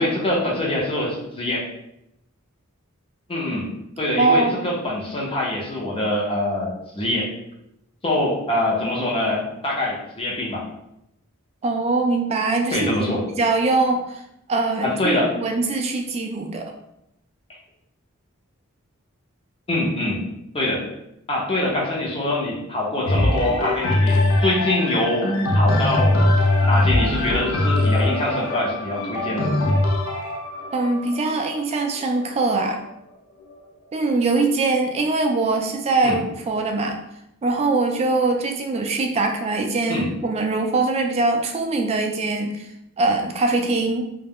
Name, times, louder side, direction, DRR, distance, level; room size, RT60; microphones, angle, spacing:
voice 1, 0.0-1.7 3.3-3.7 4.0-6.7 6.9-7.3 8.0-10.6 12.7-13.2 14.8-15.3 19.7-20.2 20.5-20.8 21.3-26.2 26.6-29.6 36.0-36.2 39.9-40.1, left 1 dB, 25° left, -3 dB, 0.7 m, -24 dB
voice 2, 4.2-4.7 11.6-12.9 13.4-14.2 14.5-16.7 30.7-32.8 33.9-37.0 37.4-42.7 43.0-44.0, right 3 dB, 30° right, 3 dB, 0.3 m, -22 dB
sound 1, 23.1-32.8 33.5-33.6, left 1 dB, 85° left, 0.4 m, -21 dB
2.3 x 2.0 x 3.4 m, 0.83 s
head